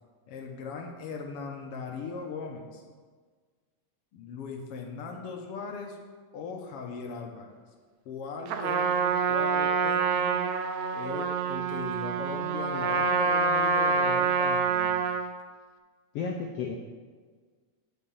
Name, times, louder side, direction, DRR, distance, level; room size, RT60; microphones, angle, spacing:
voice 1, 0.3-2.8 4.1-6.0 6.3-7.5 8.0-10.4 10.9-15.0, left 5 dB, 70° left, 2 dB, 1.5 m, -39 dB
Trumpet, 8.5-15.3, right 5 dB, 75° right, 1.7 m, -26 dB
voice 2, 16.1-16.8, left 5 dB, 85° left, 3 dB, 1.3 m, -32 dB
8.0 x 5.5 x 7.0 m, 1.5 s
omnidirectional pair, 3.5 m